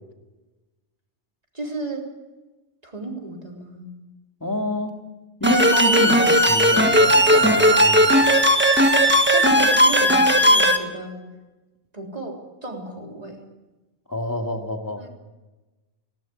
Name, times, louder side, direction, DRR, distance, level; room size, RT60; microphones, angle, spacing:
voice 1, 1.5-2.1 2.8-3.9 5.9-6.3 9.3-11.2 11.9-13.4 15.0-15.1, right 2 dB, 35° right, 0 dB, 3.7 m, -34 dB
voice 2, 4.4-5.0 5.4-8.2 14.1-15.0, left 1 dB, 15° left, 3 dB, 2.1 m, -27 dB
sound 1, 5.4-10.8, equal, 10° right, 1.5 m, -16 dB
18.5 x 17.5 x 8.4 m, 1.1 s
omnidirectional pair, 1.2 m